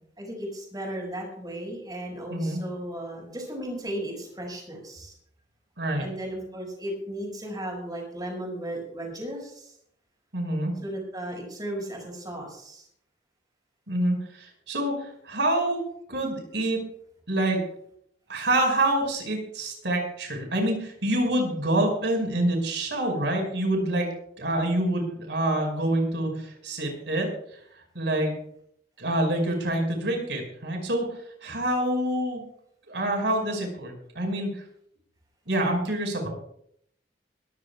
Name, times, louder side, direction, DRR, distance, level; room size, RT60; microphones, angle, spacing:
voice 1, 0.2-5.1 6.0-9.7 10.8-12.9, right 1 dB, 20° right, 0 dB, 5.9 m, -35 dB
voice 2, 2.3-2.6 5.8-6.1 10.3-10.7 13.9-15.8 16.1-16.8 17.3-17.6 18.3-24.1 24.4-27.6 27.9-28.3 29.0-31.0 31.4-32.4 32.9-34.6 35.5-36.3, right 1 dB, 70° right, 2 dB, 5.3 m, -26 dB
22.5 x 15.5 x 2.4 m, 0.68 s
head